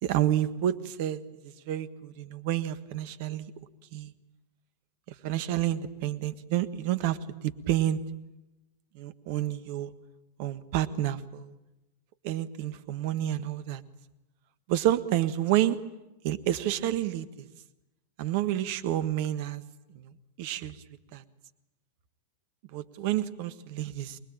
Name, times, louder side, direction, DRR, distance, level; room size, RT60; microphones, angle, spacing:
voice 1, 0.0-3.5 3.9-4.1 5.1-7.2 7.4-8.0 8.9-9.9 10.4-11.5 12.2-13.8 14.7-15.8 16.2-17.5 18.2-19.6 19.9-20.8 21.1-21.2 22.7-24.2, right 12 dB, 50° right, 12 dB, 1.6 m, -29 dB
25.0 x 21.5 x 8.9 m, 0.98 s
figure-of-eight pair, 90°, 0 cm